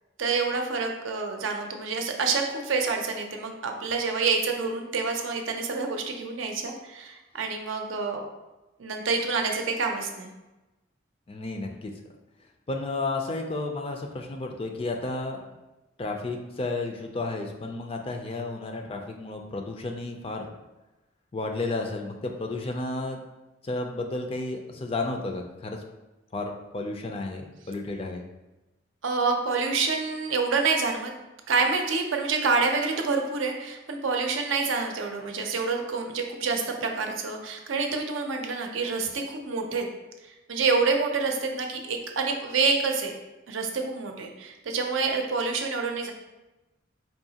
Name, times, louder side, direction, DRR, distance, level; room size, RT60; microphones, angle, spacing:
voice 1, 0.2-8.2 8.8-10.3 29.0-31.1 31.5-39.9 40.2-43.1 43.5-46.1, right 4 dB, 80° right, 3 dB, 0.6 m, -27 dB
voice 2, 11.3-11.9 12.7-15.4 16.0-20.5 21.3-23.2 23.6-25.8 26.3-28.2, left 2 dB, 30° left, 3 dB, 0.4 m, -32 dB
4.6 x 2.7 x 2.8 m, 1.0 s
head